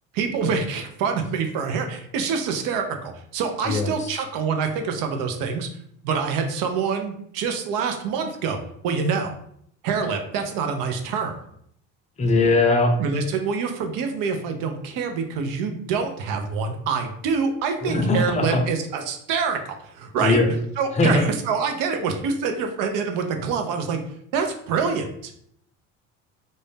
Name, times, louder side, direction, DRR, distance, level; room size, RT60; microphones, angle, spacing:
voice 1, 0.1-5.7 6.0-8.6 8.8-9.3 9.8-11.3 13.0-20.4 20.8-24.0 24.3-25.3, right 5 dB, 65° right, 5 dB, 0.6 m, -26 dB
voice 2, 3.7-4.1 12.2-12.9 17.8-18.6 20.2-20.5 21.0-21.2, left 2 dB, 20° left, 3 dB, 0.6 m, -20 dB
2.6 x 2.1 x 3.3 m, 0.67 s
supercardioid pair, 85°, 36 cm